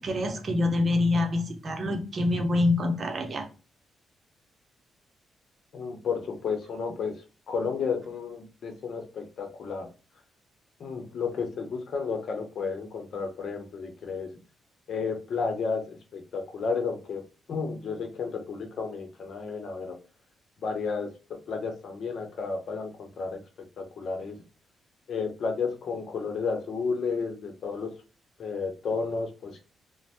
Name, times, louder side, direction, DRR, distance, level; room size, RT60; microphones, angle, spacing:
voice 1, 0.0-3.5, left 2 dB, 45° right, 5 dB, 0.6 m, -26 dB
voice 2, 5.7-7.2 7.5-9.9 10.8-14.3 14.9-17.2 17.5-20.0 20.6-23.4 23.8-24.4 25.1-27.9 28.4-29.6, left 5 dB, 65° left, 4 dB, 0.7 m, -32 dB
3.0 x 2.0 x 2.8 m, 0.33 s
cardioid pair, 90°, 0 cm